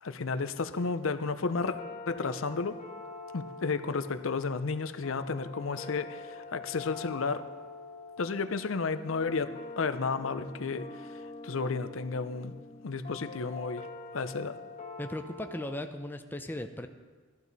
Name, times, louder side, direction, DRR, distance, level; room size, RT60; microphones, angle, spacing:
voice 1, 0.0-1.8 2.1-2.8 3.3-7.4 8.2-10.9 11.4-12.5 12.8-13.9 14.1-14.6, left 4 dB, 70° left, 11 dB, 0.6 m, -32 dB
sound 1, 1.5-15.7, left 4 dB, 45° left, 1.4 m, -45 dB
voice 2, 15.0-16.9, left 1 dB, 10° left, 6 dB, 0.5 m, -37 dB
14.5 x 11.5 x 4.1 m, 1.4 s
head